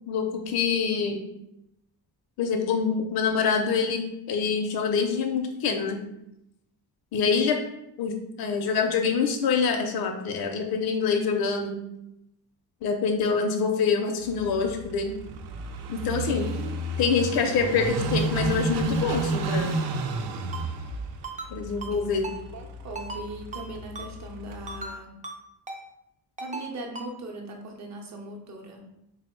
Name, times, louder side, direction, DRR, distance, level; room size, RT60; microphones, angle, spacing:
voice 1, 0.1-1.3 2.4-4.0 4.3-6.0 7.1-7.6 8.0-11.8 12.8-15.1 15.9-16.4 17.0-19.7 21.5-22.3, left 5 dB, 70° left, 3 dB, 0.5 m, -25 dB
voice 2, 7.1-7.5 16.1-16.8 21.9-22.2 22.5-25.1 26.4-28.8, right 2 dB, 45° right, 2 dB, 0.7 m, -39 dB
Car passing by / Idling, 14.2-24.9, right 3 dB, 85° right, 0.5 m, -32 dB
Ringtone, 20.5-20.6 21.2-21.5 21.8-21.9 22.2-22.4 23.0-23.2 23.5-23.7 24.0-24.1 24.7-24.9 25.2-25.4 25.7-25.8 26.4-26.7 27.0-27.1, right 3 dB, 20° right, 0.3 m, -36 dB
3.7 x 2.1 x 4.3 m, 0.85 s
wide cardioid pair, 165°, 38 cm